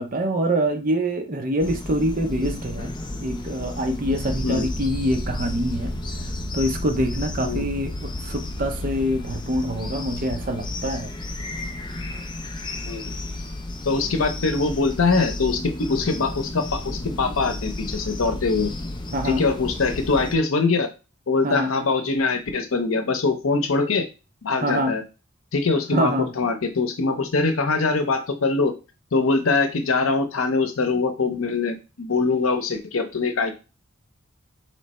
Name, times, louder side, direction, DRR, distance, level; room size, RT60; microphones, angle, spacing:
voice 1, 0.0-2.9 3.2-5.9 6.5-11.1 19.1-19.5 21.4-21.7 24.6-25.0 25.9-26.3, equal, 40° right, 5 dB, 0.7 m, -25 dB
sound 1, 1.6-20.4, left 2 dB, 20° left, 0.4 m, -33 dB
sound 2, 3.9-13.0, equal, 85° right, 1.2 m, -36 dB
voice 2, 13.9-18.7 19.2-20.9 21.3-24.1 24.4-25.0 25.5-28.7 29.1-33.5, left 3 dB, 75° left, 7 dB, 0.7 m, -23 dB
3.2 x 3.2 x 4.2 m, 0.31 s
head